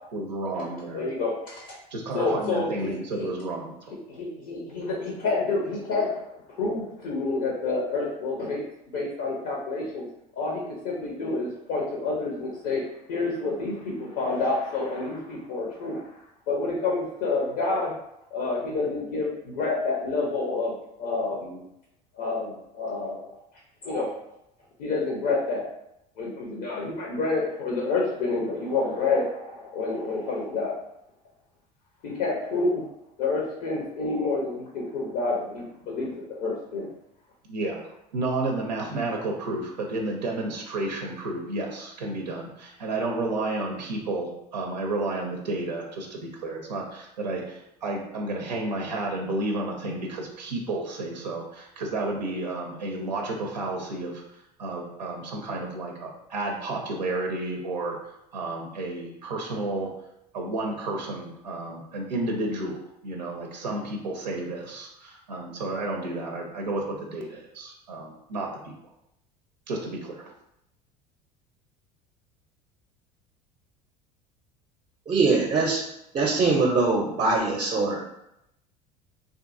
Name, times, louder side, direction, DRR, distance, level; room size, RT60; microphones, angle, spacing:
voice 1, 0.1-1.1 1.9-4.0 37.5-37.8 38.1-58.0 58.3-59.9 60.3-62.8 63.0-68.7 69.7-70.3, right 2 dB, 90° right, 0 dB, 0.5 m, -31 dB
voice 2, 0.9-1.8 2.1-3.3 4.1-6.2 6.6-8.6 8.9-10.1 10.3-12.8 13.1-16.1 16.5-17.9 18.3-21.6 22.1-23.4 23.8-24.1 24.8-25.6 26.2-30.7 32.0-32.9 33.2-36.9, left 3 dB, 70° left, -2 dB, 0.6 m, -28 dB
voice 3, 75.1-75.8 76.1-78.1, right 3 dB, 30° right, -1 dB, 0.5 m, -22 dB
2.6 x 2.5 x 2.5 m, 0.81 s
hypercardioid pair, 75°, 21 cm